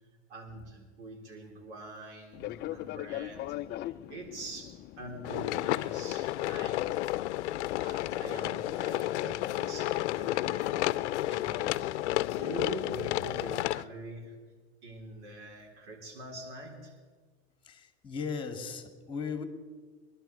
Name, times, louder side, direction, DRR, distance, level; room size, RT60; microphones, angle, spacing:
voice 1, 0.3-7.0 7.8-10.9 11.2-14.4 14.8-17.0, right 2 dB, 85° right, 1 dB, 3.7 m, -44 dB
Fixed-wing aircraft airplane, 2.3-8.8, left 15 dB, 30° left, 0.4 m, -42 dB
sound 1, 5.2-13.8, left 16 dB, 85° left, 0.6 m, -31 dB
voice 2, 17.6-19.4, left 5 dB, 15° left, 6 dB, 2.1 m, -37 dB
22.5 x 11.5 x 4.5 m, 1.5 s
supercardioid pair, 120°, 34 cm